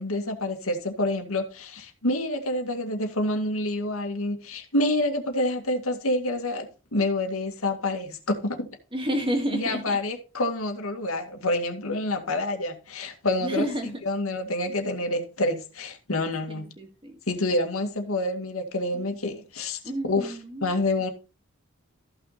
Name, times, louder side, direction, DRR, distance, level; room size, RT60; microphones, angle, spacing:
voice 1, 0.0-8.7 9.5-13.7 14.1-16.7 17.3-19.8 20.0-20.3 20.6-21.1, left 1 dB, 80° left, 2.1 m, -27 dB
voice 2, 8.9-10.0 13.4-14.0 16.5-17.2 18.9-19.0 19.8-20.7, equal, 25° right, 2.1 m, -30 dB
14.0 x 6.2 x 4.2 m
head